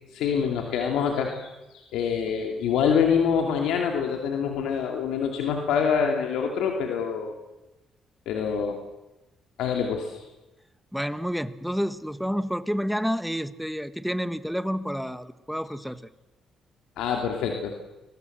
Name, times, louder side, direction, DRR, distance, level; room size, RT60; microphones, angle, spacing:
voice 1, 0.1-7.3 8.3-8.8 9.6-10.3 17.0-17.7, left 7 dB, 90° left, 3 dB, 2.4 m, -26 dB
voice 2, 10.9-16.0, equal, ahead, 13 dB, 1.3 m, -29 dB
29.0 x 22.5 x 7.9 m, 1.0 s
cardioid pair, 90°, 0 cm